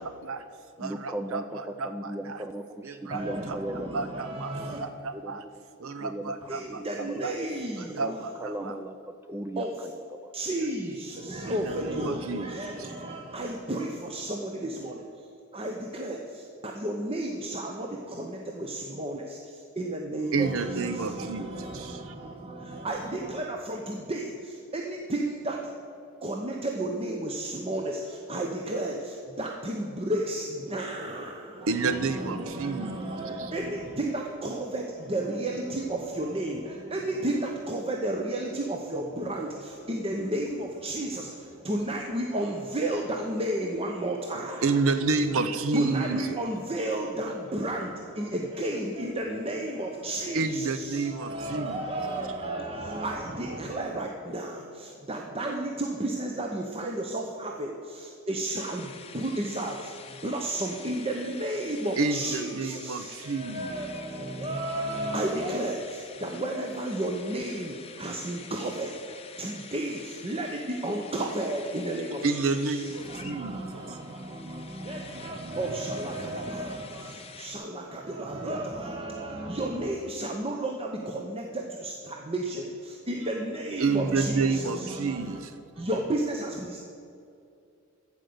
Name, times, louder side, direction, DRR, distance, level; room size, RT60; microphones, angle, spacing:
voice 1, 0.0-0.4 0.8-2.4 2.8-3.6 3.9-5.4 5.8-7.3 7.8-8.7 11.5-12.5 12.8-12.9 20.3-22.1 31.6-33.5 44.6-46.4 50.3-51.8 62.0-63.7 72.2-74.0 83.8-85.8, right 4 dB, 65° right, 10 dB, 0.6 m, -30 dB
voice 2, 0.8-4.4 5.1-7.3 7.8-10.3 10.6-11.0, right 1 dB, 10° right, 7 dB, 0.4 m, -38 dB
voice 3, 3.1-4.8 6.5-8.2 9.6-9.7 10.3-15.3 15.5-25.6 26.2-44.7 45.7-72.4 72.7-85.4 85.8-86.8, right 1 dB, 25° right, 1 dB, 0.8 m, -33 dB
sound 1, 58.4-77.6, left 6 dB, 30° left, 0.7 m, -48 dB
14.5 x 5.2 x 7.9 m, 2.5 s
head